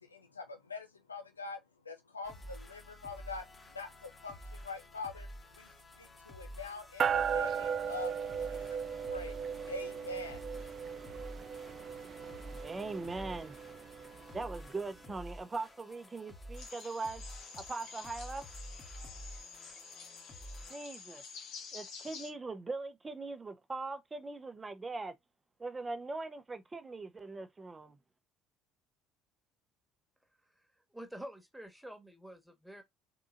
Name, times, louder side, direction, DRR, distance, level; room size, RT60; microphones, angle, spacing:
voice 1, 0.0-1.6 1.8-3.5 3.7-5.3 5.6-8.1 8.5-9.3 9.7-10.4, left 3 dB, 85° left, 0.5 m, -44 dB
sound 1, 2.2-20.8, equal, 25° left, 1.2 m, -50 dB
sound 2, 7.0-14.7, right 7 dB, 40° right, 0.4 m, -37 dB
voice 2, 12.6-13.6 14.3-17.2 17.6-18.4 20.7-21.2 21.7-25.1 25.6-28.0, right 3 dB, 20° right, 0.8 m, -40 dB
sound 3, 16.6-22.3, left 5 dB, 55° left, 1.2 m, -49 dB
voice 3, 30.9-32.8, equal, ahead, 1.4 m, -47 dB
3.8 x 3.7 x 2.4 m
figure-of-eight pair, 60°, 0 cm